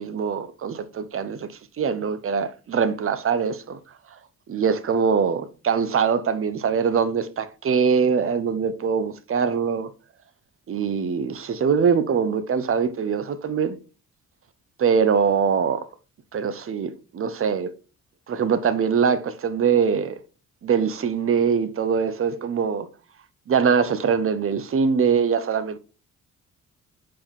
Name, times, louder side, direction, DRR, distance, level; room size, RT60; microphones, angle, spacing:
voice 1, 0.0-1.5 1.8-3.8 4.5-9.9 10.7-13.8 14.8-15.9 16.3-17.7 18.3-20.2 20.6-22.9 23.5-25.8, right 6 dB, 45° right, 0.9 m, -23 dB
5.0 x 4.8 x 5.3 m
cardioid pair, 90°, 30 cm